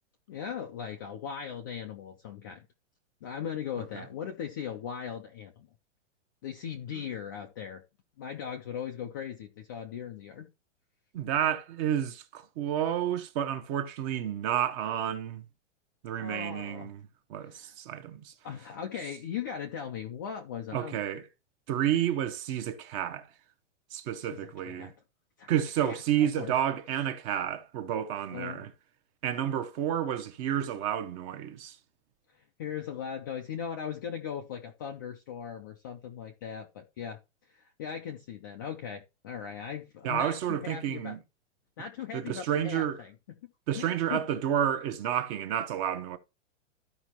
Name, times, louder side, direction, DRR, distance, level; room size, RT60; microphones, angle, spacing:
voice 1, 0.3-2.7 3.2-5.7 6.4-7.8 8.2-10.5 16.2-16.9 17.5-17.7 18.4-21.0 24.2-24.9 25.4-25.5 25.8-26.5 28.3-28.6 32.3-37.2 37.5-41.2 41.8-43.4 43.8-44.2, left 8 dB, 20° left, 0.3 m, -39 dB
voice 2, 11.1-15.4 16.0-17.0 17.3-18.3 20.7-21.3 21.7-23.3 23.9-24.9 25.5-28.7 29.2-31.8 40.0-41.2 42.1-43.0 43.7-46.2, right 10 dB, 30° right, 0.9 m, -30 dB
13.5 x 5.2 x 2.9 m
hypercardioid pair, 155°, 37 cm